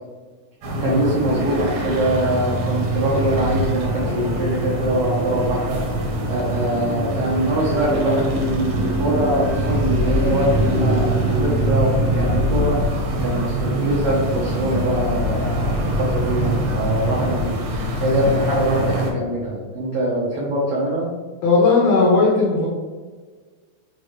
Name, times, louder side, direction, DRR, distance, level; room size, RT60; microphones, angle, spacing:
sound 1, 0.6-19.1, right 1 dB, 65° right, 1.7 m, -23 dB
voice 1, 0.8-5.8 6.3-21.1, right 1 dB, 80° right, -6 dB, 1.3 m, -23 dB
voice 2, 21.4-22.7, left 3 dB, 85° left, -3 dB, 1.5 m, -16 dB
7.0 x 4.4 x 3.2 m, 1.4 s
omnidirectional pair, 4.3 m